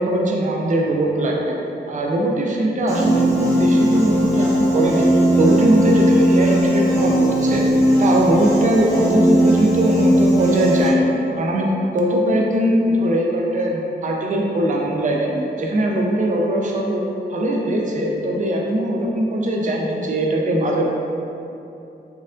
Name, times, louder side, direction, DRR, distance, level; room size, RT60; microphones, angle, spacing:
voice 1, 0.0-1.5 1.9-5.1 5.4-11.1 11.4-15.3 15.6-17.0 17.3-20.8, right 1 dB, 45° right, -1 dB, 0.4 m, -20 dB
Piano, 2.9-10.9, equal, 20° right, 0.7 m, -18 dB
4.3 x 2.4 x 2.4 m, 2.8 s
wide cardioid pair, 175°, 18 cm